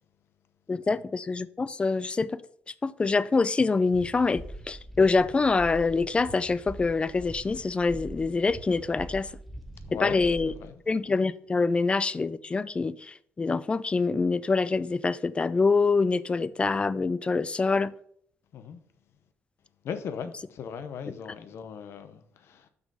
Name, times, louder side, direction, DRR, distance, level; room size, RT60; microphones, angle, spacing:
voice 1, 0.7-2.4 2.8-9.3 10.0-10.5 10.9-17.9, left 4 dB, 25° left, 0.3 m, -25 dB
sound 1, 3.9-10.7, right 1 dB, 5° left, 1.0 m, -43 dB
voice 2, 9.9-10.8 18.5-18.8 19.8-22.7, left 7 dB, 70° left, 0.8 m, -38 dB
6.0 x 5.3 x 5.4 m
cardioid pair, 100°, 5 cm